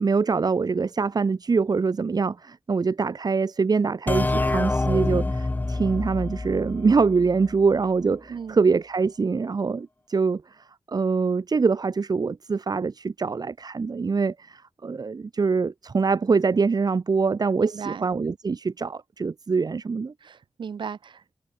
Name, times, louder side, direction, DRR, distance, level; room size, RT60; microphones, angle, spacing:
voice 1, 0.0-20.1, right 4 dB, 55° right, 2.8 m, -24 dB
sound 1, 4.1-7.6, left 2 dB, 20° left, 0.7 m, -27 dB
voice 2, 17.6-18.1 20.2-21.3, right 6 dB, 85° right, 2.0 m, -36 dB
wide cardioid pair, 90°, 8 cm